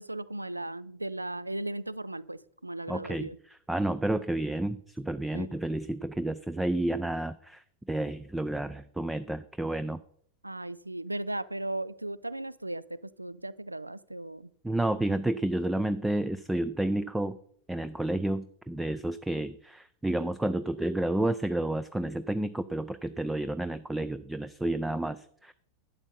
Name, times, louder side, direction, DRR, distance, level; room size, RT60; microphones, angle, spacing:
voice 1, 0.0-3.4 5.3-5.6 10.4-14.5, right 1 dB, 85° right, 20 dB, 0.4 m, -37 dB
voice 2, 2.9-3.3 3.7-10.0 14.6-17.4 17.7-25.5, right 1 dB, 5° right, 14 dB, 0.4 m, -30 dB
11.5 x 8.1 x 4.1 m, 0.65 s
figure-of-eight pair, 90°, 0 cm